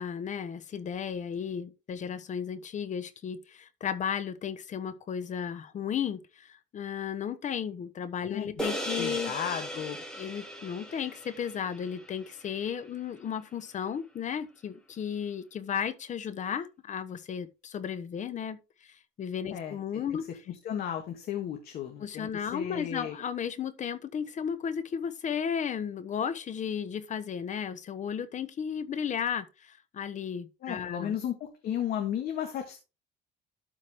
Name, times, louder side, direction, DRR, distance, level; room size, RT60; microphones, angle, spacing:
voice 1, 0.0-9.3 10.1-20.2 22.0-31.2, left 8 dB, 45° left, 1.1 m, -34 dB
sound 1, 8.6-13.2, equal, 5° left, 2.5 m, -38 dB
voice 2, 9.0-10.0 19.5-20.0 20.5-23.2 30.6-32.8, left 9 dB, 65° left, 1.6 m, -34 dB
12.5 x 4.8 x 3.6 m
cardioid pair, 110°, 17 cm